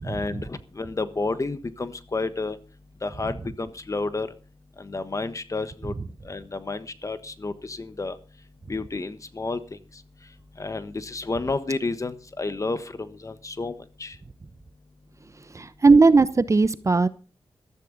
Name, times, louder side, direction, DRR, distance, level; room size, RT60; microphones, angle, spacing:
voice 1, 0.0-2.6 3.0-4.3 4.8-5.9 6.2-8.2 8.7-9.6 10.6-13.7 14.0-14.1, left 3 dB, 35° left, 12 dB, 1.3 m, -30 dB
voice 2, 15.5-17.1, right 3 dB, 35° right, 14 dB, 0.8 m, -17 dB
15.0 x 13.5 x 4.0 m, 0.34 s
cardioid pair, 80°, 9 cm